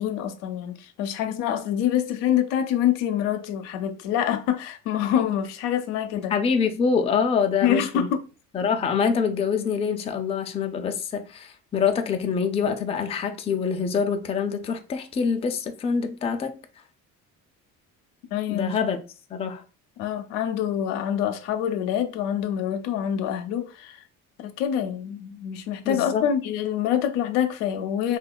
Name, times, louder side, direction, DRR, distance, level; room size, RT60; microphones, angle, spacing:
voice 1, 0.0-6.3 7.6-8.2 18.3-18.7 20.0-24.0 24.4-28.2, left 9 dB, 80° left, 0.5 m, -26 dB
voice 2, 6.3-8.1 8.5-16.5 18.5-19.0 19.3-19.6 25.8-26.2, left 6 dB, 15° left, 0.3 m, -25 dB
2.8 x 2.2 x 2.2 m
hypercardioid pair, 65°, 40 cm